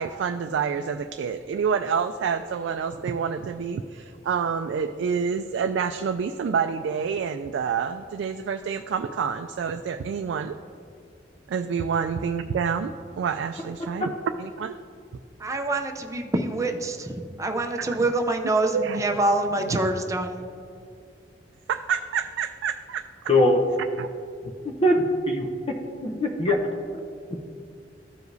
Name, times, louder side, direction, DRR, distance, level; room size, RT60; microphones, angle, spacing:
voice 1, 0.0-10.6 11.5-14.1 14.4-14.8 17.8-18.1 18.7-19.2 19.7-19.9 21.7-23.1 24.0-24.1, right 6 dB, 85° right, 7 dB, 0.3 m, -28 dB
voice 2, 15.4-17.1 17.4-20.4, right 2 dB, 20° right, 4 dB, 0.5 m, -25 dB
voice 3, 23.3-23.6 24.8-25.5 26.0-26.6, left 1 dB, 30° left, 2 dB, 0.6 m, -21 dB
14.0 x 4.9 x 2.7 m, 2.3 s
head